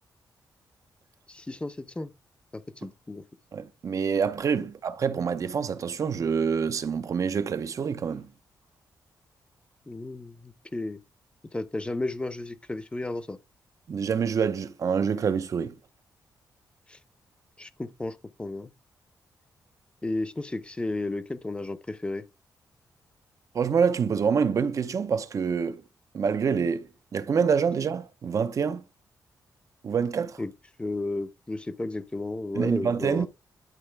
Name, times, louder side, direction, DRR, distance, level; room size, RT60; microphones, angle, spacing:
voice 1, 1.3-2.1 2.5-3.2 9.9-11.0 11.5-13.4 16.9-17.0 17.6-18.7 20.0-22.3 30.4-30.5 30.8-33.3, left 2 dB, 15° left, 0.7 m, -33 dB
voice 2, 3.5-8.3 13.9-15.8 23.5-25.8 26.1-26.9 27.1-28.8 29.8-30.4 32.5-33.3, right 6 dB, 50° right, 0.7 m, -26 dB
11.0 x 4.3 x 3.3 m
cardioid pair, 110°, 7 cm